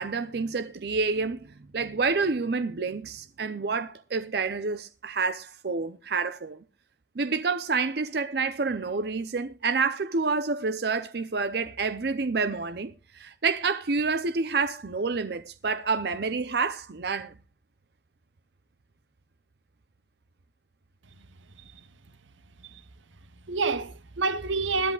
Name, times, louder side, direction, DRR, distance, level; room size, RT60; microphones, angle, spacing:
voice 1, 0.0-6.6 7.2-17.3, right 4 dB, 60° right, 0.6 m, -28 dB
voice 2, 21.6-21.9 22.6-22.8 23.5-24.9, right 4 dB, 90° right, 0.8 m, -29 dB
21.0 x 10.5 x 2.3 m
head